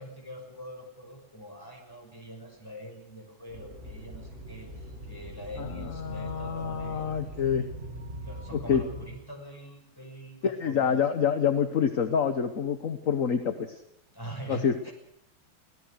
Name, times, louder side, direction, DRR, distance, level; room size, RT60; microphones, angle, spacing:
voice 1, 0.0-7.2 8.2-11.0 14.1-14.9, right 1 dB, 10° left, 1 dB, 6.1 m, -44 dB
sound 1, 3.5-9.1, equal, 35° right, 3.4 m, -41 dB
voice 2, 5.6-7.7 8.5-8.8 10.4-13.8 14.5-14.9, left 7 dB, 45° left, 9 dB, 1.3 m, -27 dB
24.5 x 17.0 x 6.6 m, 0.76 s
omnidirectional pair, 2.3 m